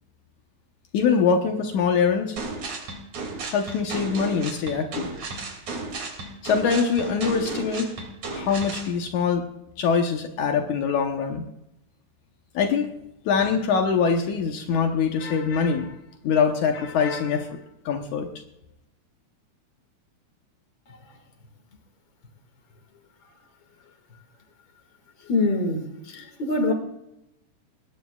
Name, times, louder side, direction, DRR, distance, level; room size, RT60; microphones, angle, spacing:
voice 1, 0.9-2.4 3.5-5.1 6.4-7.9 8.3-9.4 9.8-11.5 12.5-12.9 13.3-15.9 16.2-17.6 17.9-18.3, left 6 dB, 75° left, 2.5 m, -23 dB
sound 1, 2.4-8.9, right 3 dB, 65° right, 3.9 m, -34 dB
voice 2, 20.9-21.2 23.2-23.3 24.1-24.2 25.2-26.7, left 2 dB, 40° left, 2.6 m, -26 dB
20.5 x 18.5 x 2.4 m
omnidirectional pair, 3.6 m